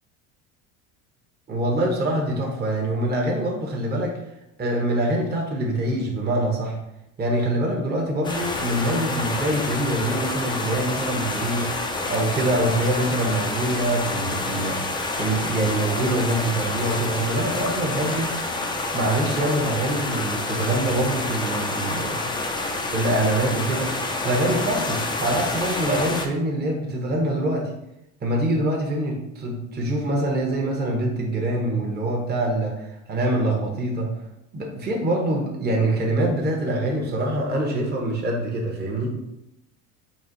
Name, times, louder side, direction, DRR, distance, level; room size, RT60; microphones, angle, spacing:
voice 1, 1.5-4.2 4.6-6.8 7.2-18.3 18.9-22.3 22.9-23.9 24.2-27.7 28.2-34.1 34.5-39.1, right 1 dB, 25° right, -1 dB, 1.0 m, -24 dB
sound 1, 8.2-26.3, left 2 dB, 15° left, 0.4 m, -28 dB
4.2 x 2.4 x 3.9 m, 0.84 s
supercardioid pair, 90°, 37 cm